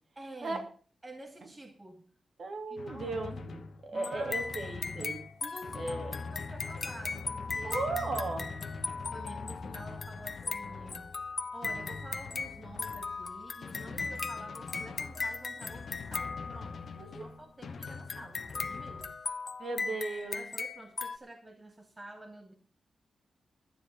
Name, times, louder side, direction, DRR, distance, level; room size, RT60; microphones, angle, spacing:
voice 1, 0.1-0.6 1.0-2.0 2.7-3.2 3.5-4.4 5.4-7.8 9.1-11.1 11.5-19.1 20.3-22.5, right 1 dB, 20° right, 4 dB, 1.7 m, -49 dB
voice 2, 2.4-5.2 5.7-6.1 7.6-8.5 17.0-17.2 19.6-20.5, right 3 dB, 50° right, 4 dB, 3.0 m, -36 dB
Drum, 2.8-19.1, left 4 dB, 60° left, 1.2 m, -44 dB
sound 1, 3.9-17.1 17.8-21.2, left 4 dB, 40° left, 0.8 m, -38 dB
12.0 x 9.8 x 6.5 m, 0.42 s
wide cardioid pair, 135°, 0 cm